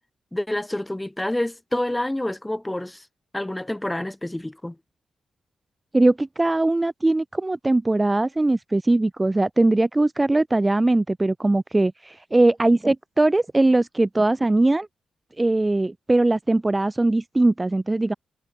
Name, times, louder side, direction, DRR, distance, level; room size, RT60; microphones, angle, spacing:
voice 1, 0.3-3.1 3.3-4.8, left 1 dB, 10° left, 7.1 m, -28 dB
voice 2, 5.9-14.9 15.4-18.1, right 2 dB, 15° right, 2.0 m, -20 dB
cardioid pair, 100°, 0 cm